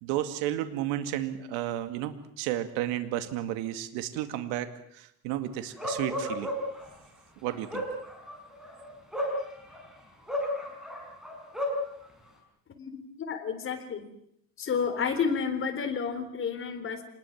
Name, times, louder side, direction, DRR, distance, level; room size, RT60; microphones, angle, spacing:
voice 1, 0.0-6.5 7.4-7.8, right 12 dB, 75° right, 10 dB, 2.3 m, -32 dB
Bark, 5.8-6.8 7.5-9.8 10.3-11.8, left 1 dB, ahead, 6.0 m, -33 dB
voice 2, 12.8-14.1 14.6-17.0, left 6 dB, 30° left, 6 dB, 3.9 m, -31 dB
26.5 x 20.5 x 7.3 m, 0.70 s
cardioid pair, 135°, 40 cm